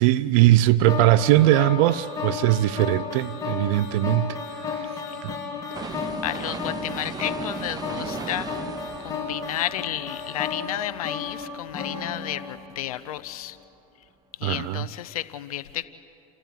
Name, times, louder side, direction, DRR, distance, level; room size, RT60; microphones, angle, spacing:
voice 1, 0.0-4.4 4.7-4.9 5.2-5.3 5.8-5.9 14.4-14.8, right 15 dB, 65° right, 16 dB, 0.7 m, -20 dB
sound 1, 0.9-13.1, left 5 dB, 20° left, 4.8 m, -33 dB
sound 2, 5.7-11.7 12.1-12.2, right 5 dB, 20° right, 1.1 m, -37 dB
voice 2, 5.9-8.5 9.0-13.6 14.4-15.8, left 13 dB, 90° left, 14 dB, 1.0 m, -32 dB
29.5 x 14.5 x 9.2 m, 2.5 s
supercardioid pair, 115°, 18 cm